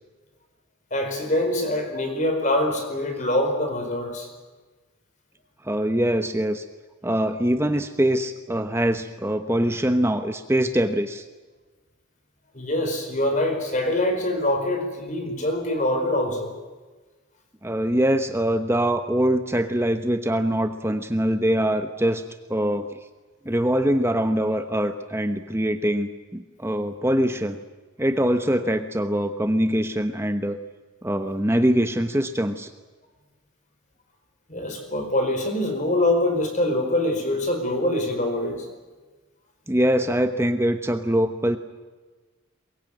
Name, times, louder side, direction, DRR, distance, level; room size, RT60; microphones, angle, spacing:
voice 1, 0.9-4.3 12.5-16.5 34.5-38.7, left 1 dB, 35° left, 5 dB, 4.8 m, -24 dB
voice 2, 5.6-6.6 7.0-11.2 17.6-22.2 22.5-23.0 23.4-27.6 28.0-30.6 31.0-32.7 39.7-41.6, equal, 10° right, 8 dB, 1.0 m, -23 dB
23.0 x 22.0 x 9.0 m, 1.3 s
head